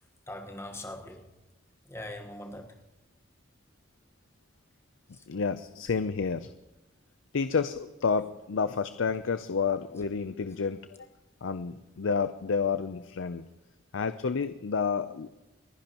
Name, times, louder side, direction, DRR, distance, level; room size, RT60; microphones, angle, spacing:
voice 1, 0.3-1.3 1.8-2.8 5.1-5.3, left 1 dB, 15° left, 1.2 m, -41 dB
voice 2, 5.3-6.5 7.3-10.8 11.4-13.4 13.9-15.3, left 5 dB, 75° left, 0.5 m, -30 dB
29.5 x 11.0 x 2.9 m
head